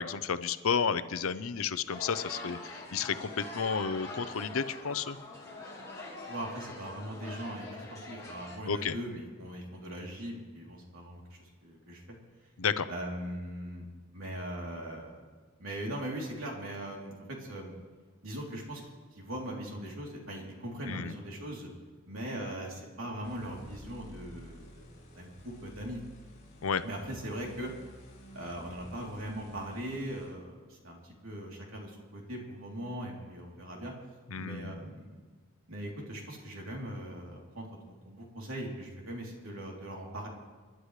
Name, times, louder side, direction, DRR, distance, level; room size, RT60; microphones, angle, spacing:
voice 1, 0.0-5.2 8.6-8.9 12.6-12.9 20.9-21.1 26.6-26.8 34.3-34.8, left 6 dB, 85° left, 13 dB, 0.6 m, -32 dB
sound 1, 1.9-8.6, left 2 dB, 15° left, 2.6 m, -44 dB
voice 2, 6.3-12.2 12.9-13.8 14.1-15.2 15.6-17.7 18.2-18.8 19.1-21.7 22.1-24.9 25.1-26.0 26.8-27.7 28.3-33.9 34.4-35.1 35.7-40.3, right 1 dB, 85° right, -2 dB, 3.3 m, -40 dB
sound 2, 23.2-30.4, equal, 40° left, 5.0 m, -51 dB
28.5 x 11.5 x 3.3 m, 1.4 s
head